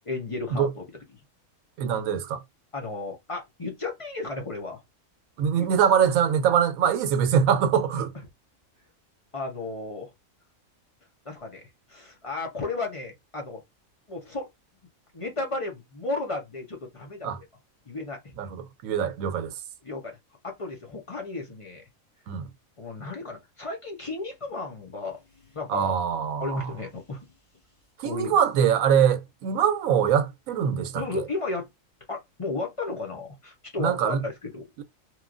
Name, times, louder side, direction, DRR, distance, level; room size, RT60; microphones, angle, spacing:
voice 1, 0.1-0.8 2.7-4.8 5.6-5.7 9.3-10.1 11.3-13.6 14.1-14.5 15.1-17.5 17.9-18.2 19.8-20.2 20.4-21.8 22.8-25.2 25.5-26.0 26.4-27.3 28.0-28.4 31.0-31.7 32.1-34.6, left 3 dB, 35° left, 0.5 m, -34 dB
voice 2, 1.8-2.4 5.4-8.1 17.2-17.4 18.4-19.5 22.3-22.5 25.7-26.7 28.0-31.3 33.8-34.2 34.8-34.9, right 8 dB, 85° right, 1.0 m, -23 dB
2.9 x 2.4 x 2.4 m
omnidirectional pair, 1.4 m